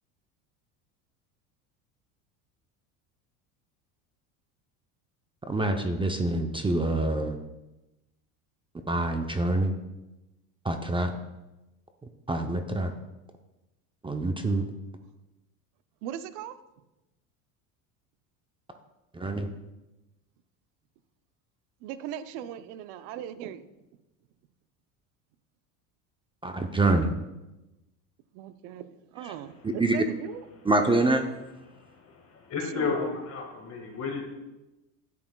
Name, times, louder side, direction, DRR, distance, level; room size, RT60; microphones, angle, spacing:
voice 1, 5.5-7.4 8.9-9.7 10.6-11.1 12.3-12.9 14.0-14.7 19.1-19.5 26.4-27.1 29.2-29.3 29.8-30.0 30.6-31.3, right 2 dB, 15° right, 5 dB, 0.6 m, -26 dB
voice 2, 16.0-16.6 21.8-23.7 28.3-30.5 32.7-33.2, right 10 dB, 65° right, 13 dB, 0.7 m, -39 dB
voice 3, 31.7-34.3, left 5 dB, 35° left, 1 dB, 1.8 m, -33 dB
10.0 x 8.5 x 2.3 m, 1.0 s
supercardioid pair, 90°, 41 cm